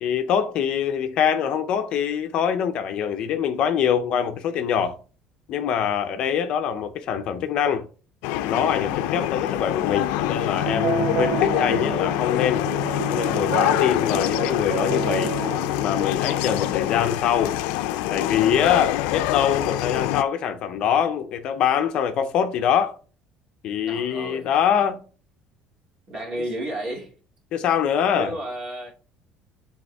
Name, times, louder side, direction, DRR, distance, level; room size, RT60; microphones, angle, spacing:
voice 1, 0.0-5.0 5.5-7.8 8.5-12.7 13.1-15.3 15.8-17.6 18.1-23.0 23.6-25.0 27.5-28.3, left 8 dB, 45° left, 0.6 m, -24 dB
sound 1, 8.2-20.2, left 14 dB, 85° left, 0.4 m, -25 dB
sound 2, 10.3-15.8, right 13 dB, 55° right, 0.3 m, -30 dB
voice 2, 23.9-24.6 26.1-27.1 28.1-28.9, right 1 dB, 35° right, 2.2 m, -32 dB
7.8 x 3.5 x 3.4 m
cardioid pair, 165°, 2 cm